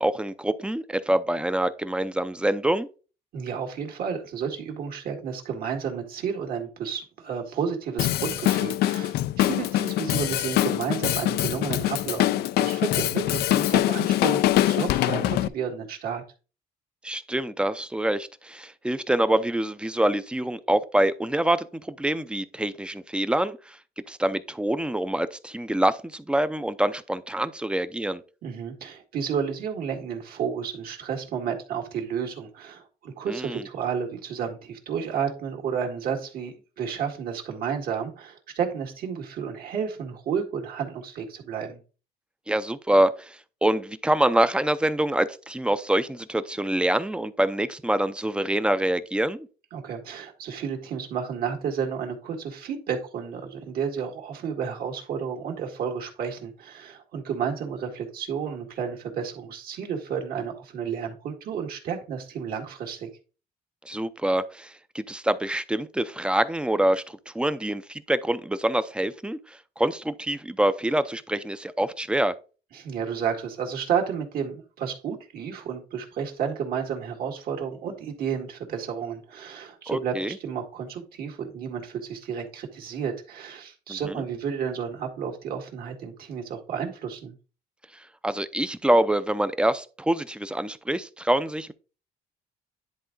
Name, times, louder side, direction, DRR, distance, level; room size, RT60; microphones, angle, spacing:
voice 1, 0.0-2.9 17.0-23.8 24.1-28.2 33.3-33.6 42.5-49.5 63.9-69.4 69.8-72.3 79.9-80.4 83.9-84.2 88.2-91.7, right 1 dB, 5° right, 0.6 m, -25 dB
voice 2, 3.3-16.2 28.4-41.8 49.7-63.1 72.7-87.3, right 7 dB, 65° right, 2.0 m, -31 dB
Drum kit, 8.0-15.5, left 14 dB, 75° left, 0.4 m, -24 dB
10.5 x 3.6 x 3.9 m
cardioid pair, 110°, 17 cm